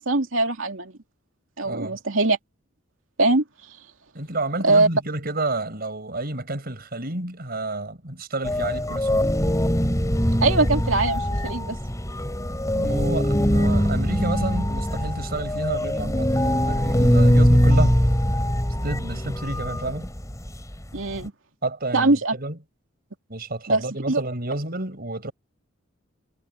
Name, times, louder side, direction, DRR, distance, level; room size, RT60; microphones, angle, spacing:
voice 1, 0.1-0.9 1.6-2.4 3.2-3.4 4.6-4.9 10.4-11.8 20.9-21.3 21.9-22.3 23.7-23.8 24.1-24.2, right 2 dB, 80° right, 2.7 m, -21 dB
voice 2, 1.6-2.0 4.1-9.3 12.7-18.0 18.8-20.1 21.6-22.6 23.3-25.3, right 2 dB, 50° right, 5.7 m, -30 dB
sound 1, 8.4-21.3, equal, 15° left, 3.9 m, -22 dB
head